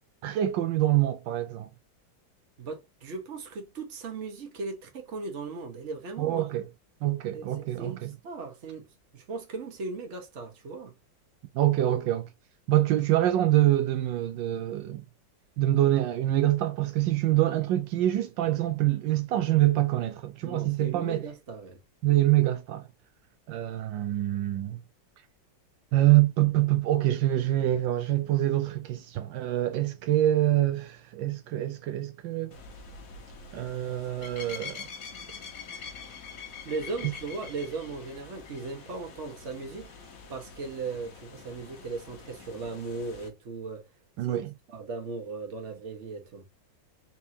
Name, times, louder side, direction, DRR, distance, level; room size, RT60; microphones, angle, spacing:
voice 1, 0.2-1.7 6.2-6.7 7.0-8.1 11.5-12.3 12.7-15.0 15.6-21.3 22.0-22.9 23.5-24.8 25.9-32.6 33.5-34.9 35.8-35.9 37.0-37.1 44.2-44.5, right 14 dB, 80° right, 1.2 m, -25 dB
voice 2, 2.6-6.5 7.3-8.9 9.1-10.9 20.4-21.8 36.6-39.9 40.3-43.8 44.2-44.4 44.7-46.4, right 3 dB, 40° right, 1.3 m, -37 dB
sound 1, 32.5-43.3, left 5 dB, 55° left, 1.4 m, -45 dB
4.3 x 3.5 x 2.8 m
omnidirectional pair, 2.0 m